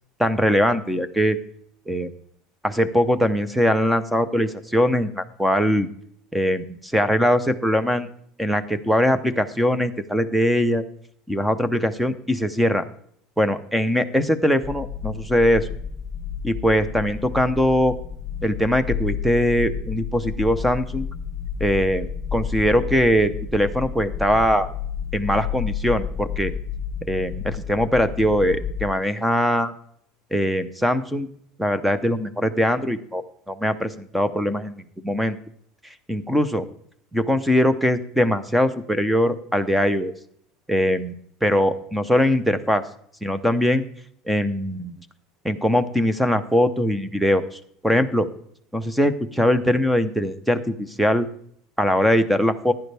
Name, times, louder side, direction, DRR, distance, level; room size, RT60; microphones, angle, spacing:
voice 1, 0.2-1.4 1.9-2.1 2.6-5.9 6.3-8.1 8.4-10.8 11.3-12.8 13.4-15.7 16.4-17.9 18.4-21.1 21.6-24.7 25.1-26.5 27.1-29.7 30.3-31.3 31.6-33.2 33.5-35.4 36.1-36.6 37.1-40.1 40.7-42.8 43.2-43.8 44.3-44.9 45.4-48.3 48.7-51.3 51.8-52.7, equal, ahead, 12 dB, 0.8 m, -21 dB
sound 1, 14.6-28.9, left 7 dB, 25° left, 0.9 m, -31 dB
15.5 x 10.5 x 3.5 m, 0.63 s
cardioid pair, 155°, 0 cm